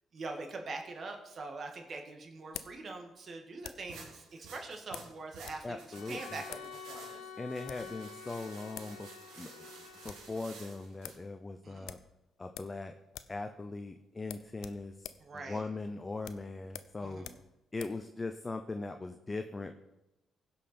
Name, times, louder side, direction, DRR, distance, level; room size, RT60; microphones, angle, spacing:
voice 1, 0.1-5.8 6.1-7.3 11.6-11.9 15.2-15.7 17.0-17.4, right 3 dB, 55° right, 4 dB, 1.8 m, -43 dB
sound 1, 1.1-4.0 4.9-5.7 5.9-6.0 6.4-6.7 7.5-7.9 8.5-8.6 8.7-9.0 9.3-9.4 9.7-10.3 10.7-10.8 11.0-11.3 11.8-12.8 13.1-13.4 13.7-13.8 14.2-18.0, left 10 dB, 75° left, 0.5 m, -48 dB
sound 2, 3.9-11.2, right 4 dB, 80° right, 1.9 m, -52 dB
voice 2, 5.6-6.4 7.4-9.1 9.4-9.6 10.0-12.0 12.4-12.9 13.3-15.1 15.3-17.3 17.7-19.7, left 3 dB, 25° left, 7 dB, 0.8 m, -40 dB
Bowed string instrument, 5.9-10.9, left 7 dB, 90° left, 1.1 m, -49 dB
16.0 x 5.7 x 4.4 m, 0.94 s
supercardioid pair, 55°, 0 cm